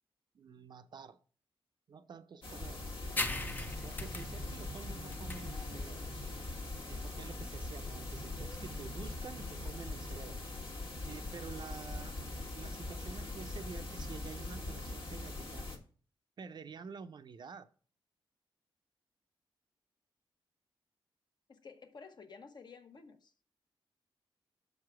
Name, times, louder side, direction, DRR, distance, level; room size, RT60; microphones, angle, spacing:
voice 1, 0.3-1.2 1.9-6.2 6.9-10.4 11.0-12.1 12.5-15.7 16.4-17.7, right 5 dB, 50° right, 0.5 m, -49 dB
sound 1, 2.4-15.8, left 2 dB, 70° left, 1.4 m, -42 dB
sound 2, 3.2-10.3, left 2 dB, 20° left, 0.6 m, -42 dB
voice 2, 21.5-23.3, left 5 dB, 50° left, 0.9 m, -53 dB
6.7 x 4.8 x 4.7 m
wide cardioid pair, 135°, 9 cm